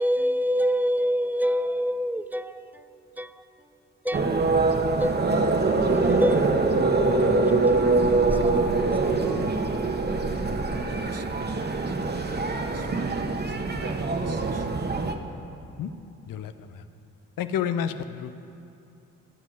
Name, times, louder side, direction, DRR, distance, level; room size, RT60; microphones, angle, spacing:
voice 1, 0.0-2.6 3.2-3.3 4.0-4.3 5.0-5.2 5.5-6.6 7.7-7.8 8.4-8.5 9.0-9.5, equal, 5° right, 0.5 m, -26 dB
sound 1, 4.1-15.1, right 3 dB, 30° right, 1.1 m, -24 dB
voice 2, 11.0-11.8 12.7-13.2 13.6-14.6, right 7 dB, 45° right, 0.8 m, -45 dB
voice 3, 17.4-18.3, left 8 dB, 75° left, 0.6 m, -29 dB
16.5 x 6.3 x 6.2 m
supercardioid pair, 50°, 34 cm